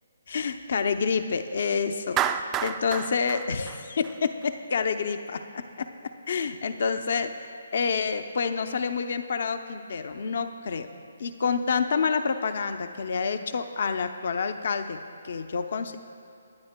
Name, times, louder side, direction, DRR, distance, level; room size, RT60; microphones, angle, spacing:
voice 1, 0.3-7.3 7.7-10.9 11.2-16.0, left 5 dB, 55° left, 9 dB, 0.6 m, -28 dB
Clapping, 2.2-4.5, right 9 dB, 20° right, 0.3 m, -29 dB
23.0 x 9.2 x 2.2 m, 2.8 s
figure-of-eight pair, 140°, 0 cm